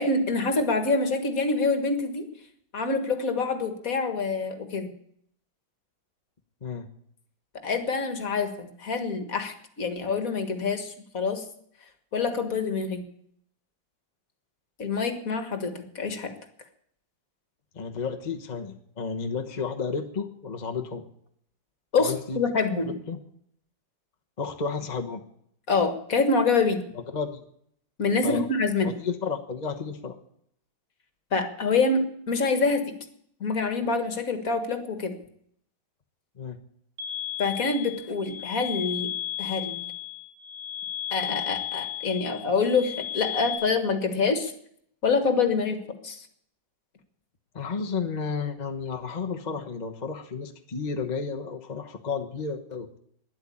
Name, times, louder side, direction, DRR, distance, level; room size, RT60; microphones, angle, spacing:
voice 1, 0.0-2.3 2.7-4.9 7.6-11.4 12.1-13.0 14.8-16.3 21.9-22.9 25.7-26.8 28.0-28.9 31.3-32.9 33.4-35.1 37.4-39.1 39.4-39.8 41.1-44.5 45.0-45.8 46.0-46.3, left 4 dB, 50° left, 8 dB, 2.0 m, -26 dB
voice 2, 17.7-21.0 22.1-22.4 23.1-23.2 24.4-25.2 27.1-27.4 28.2-28.5 28.8-30.2 36.4-36.6 47.5-53.0, left 5 dB, 30° left, 3 dB, 1.1 m, -32 dB
sound 1, 37.0-43.6, left 11 dB, 90° right, 3.8 m, -34 dB
12.5 x 10.5 x 8.6 m, 0.68 s
omnidirectional pair, 2.0 m